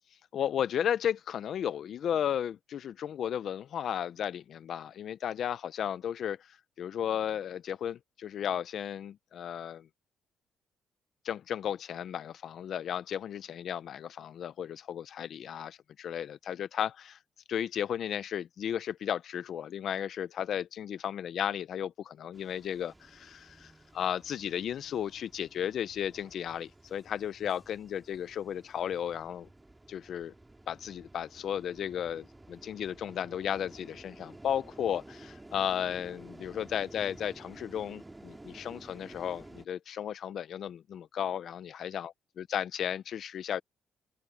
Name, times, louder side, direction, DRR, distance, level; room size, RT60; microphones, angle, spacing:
voice 1, 0.3-9.9 11.2-17.2 17.5-29.5 29.9-30.3 30.7-42.1 42.4-43.6, left 9 dB, 65° left, 0.5 m, -34 dB
sound 1, 22.3-39.7, right 2 dB, 10° right, 2.6 m, -52 dB
open air
cardioid pair, 105°, 0 cm